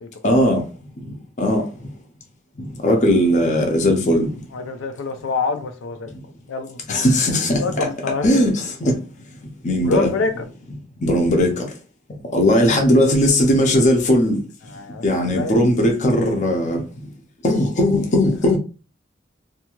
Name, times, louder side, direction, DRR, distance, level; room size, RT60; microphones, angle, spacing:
voice 1, 0.2-0.6 1.0-1.6 2.8-4.4 6.9-7.6 8.2-8.9 9.6-10.1 11.0-11.7 12.3-14.4 15.0-16.8 17.4-18.6, left 1 dB, 40° left, 0.6 m, -18 dB
voice 2, 4.5-6.1 6.5-6.8 7.6-8.4 9.8-10.3 14.6-15.6, left 4 dB, 85° left, 0.4 m, -26 dB
2.6 x 2.4 x 2.9 m
head